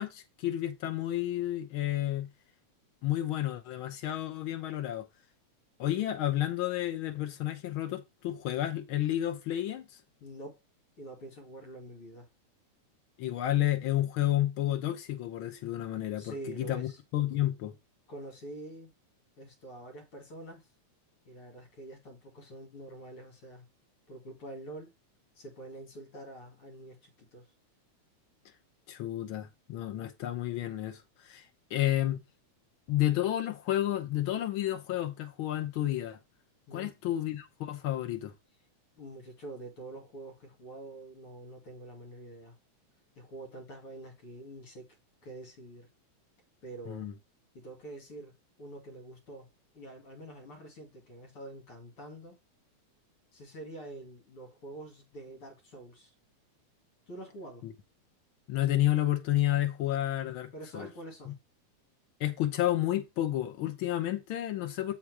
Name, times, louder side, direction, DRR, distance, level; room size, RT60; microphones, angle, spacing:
voice 1, 0.0-2.3 3.0-5.1 5.8-9.9 13.2-17.7 28.9-31.4 31.7-32.2 32.9-36.2 36.7-38.3 46.9-47.1 57.6-57.7 58.5-60.9 62.2-64.9, left 13 dB, 75° left, 1.2 m, -31 dB
voice 2, 10.2-10.6 11.0-12.3 16.2-17.0 18.1-18.9 19.4-20.7 21.3-23.6 24.1-24.9 25.3-27.5 36.7-36.9 39.0-42.6 43.2-44.9 45.2-45.9 46.6-47.1 47.5-48.3 48.6-49.5 49.7-52.4 53.3-56.1 57.1-57.7 60.5-61.4, right 2 dB, 50° left, 2.9 m, -46 dB
7.4 x 4.6 x 4.7 m
omnidirectional pair, 3.5 m